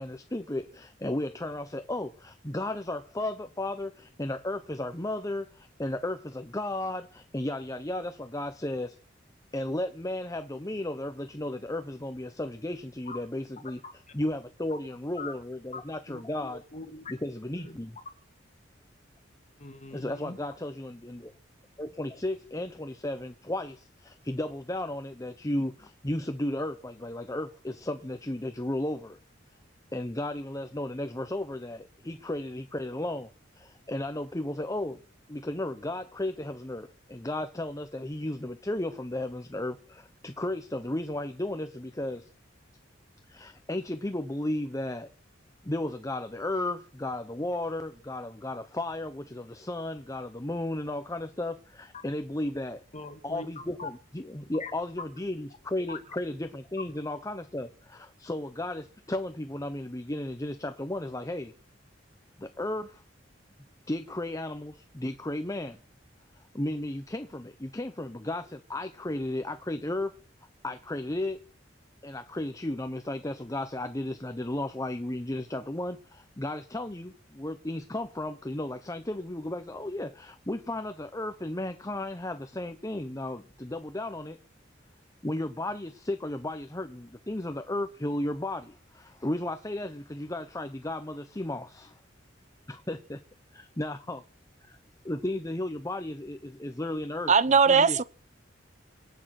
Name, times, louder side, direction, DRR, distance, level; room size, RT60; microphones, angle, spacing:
voice 1, 0.0-9.0 9.5-13.8 14.1-16.6 17.1-18.0 19.9-21.3 21.8-29.2 29.9-35.0 35.3-42.3 43.3-45.1 45.6-52.8 53.2-61.5 62.4-63.0 63.9-65.8 66.5-70.2 70.6-71.4 72.0-84.4 85.2-92.0 92.7-93.2 93.5-94.2 94.6-94.8 95.0-98.0, left 1 dB, 20° left, 1.0 m, -34 dB
voice 2, 16.5-17.0 17.5-17.7 19.6-20.4 52.9-53.5 53.8-53.9 54.6-54.7 55.9-56.0, left 3 dB, 40° left, 2.5 m, -41 dB
voice 3, 97.3-98.0, right 5 dB, 40° right, 0.8 m, -19 dB
26.0 x 9.0 x 6.1 m
head